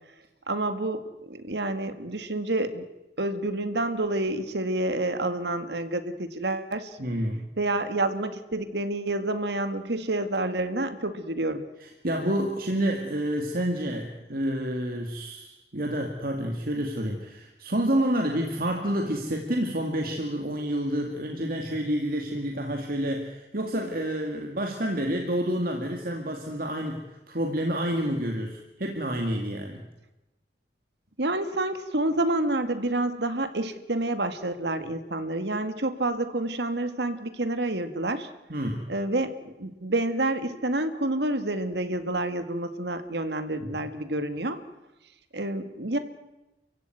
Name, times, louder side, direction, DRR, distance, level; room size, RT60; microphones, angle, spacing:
voice 1, 0.5-2.9 3.2-7.0 7.6-11.7 31.2-38.3 38.9-44.6 45.3-46.0, right 2 dB, 70° right, 9 dB, 2.0 m, -28 dB
voice 2, 7.0-7.4 11.8-29.8 38.5-38.8 43.7-43.8, equal, 55° right, 2 dB, 2.3 m, -29 dB
29.0 x 16.0 x 9.5 m, 1.0 s
head